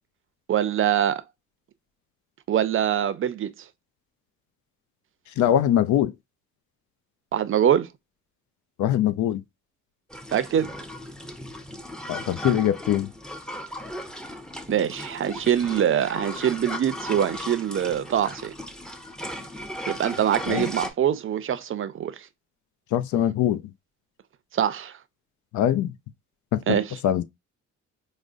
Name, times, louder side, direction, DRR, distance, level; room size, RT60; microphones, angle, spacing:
voice 1, 0.5-1.2 2.5-3.5 7.3-7.9 10.3-10.7 14.7-18.5 19.9-22.1 24.5-24.9 26.7-27.0, right 9 dB, 45° right, 0.5 m, -24 dB
voice 2, 5.4-6.1 8.8-9.4 12.1-13.1 20.5-20.7 22.9-23.6 25.5-25.9 26.5-26.8 27.0-27.2, left 11 dB, 75° left, 0.5 m, -22 dB
sound 1, 10.1-20.9, left 1 dB, ahead, 0.6 m, -36 dB
4.9 x 2.1 x 2.5 m
cardioid pair, 90°, 30 cm